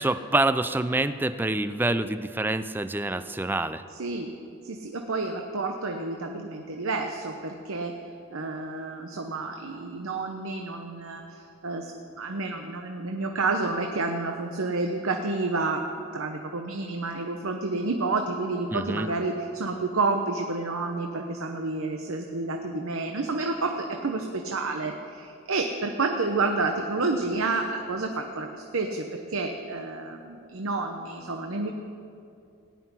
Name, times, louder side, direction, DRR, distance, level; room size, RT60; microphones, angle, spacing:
voice 1, 0.0-3.8 18.7-19.1, right 2 dB, 10° right, 12 dB, 0.3 m, -26 dB
voice 2, 3.9-4.3 4.6-7.9 8.3-15.8 16.1-31.7, right 3 dB, 80° right, 4 dB, 0.9 m, -30 dB
17.0 x 6.0 x 9.7 m, 2.5 s
head